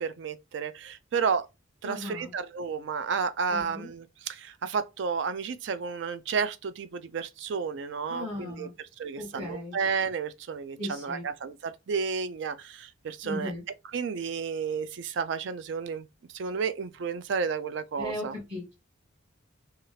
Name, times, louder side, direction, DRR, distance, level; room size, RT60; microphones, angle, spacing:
voice 1, 0.0-1.5 1.8-8.7 9.0-13.5 13.9-16.1 16.3-18.3, right 5 dB, 60° right, 0.4 m, -32 dB
voice 2, 1.8-2.3 3.5-3.9 8.1-8.7 9.2-9.8 10.8-11.3 13.2-13.6 18.0-18.7, left 1 dB, 30° right, 1.0 m, -37 dB
2.9 x 2.4 x 3.0 m
head